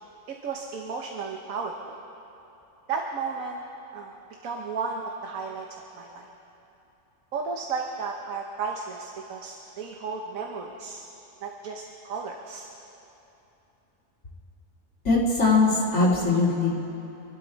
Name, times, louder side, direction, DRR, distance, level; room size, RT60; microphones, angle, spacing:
voice 1, 0.3-2.0 2.9-3.6 3.9-4.1 4.4-5.7 5.9-6.3 7.3-11.0 11.4-12.7, right 5 dB, 90° right, 1 dB, 1.4 m, -33 dB
voice 2, 15.0-16.7, left 3 dB, 70° left, -8 dB, 3.1 m, -21 dB
27.5 x 12.0 x 4.0 m, 3.0 s
omnidirectional pair, 1.4 m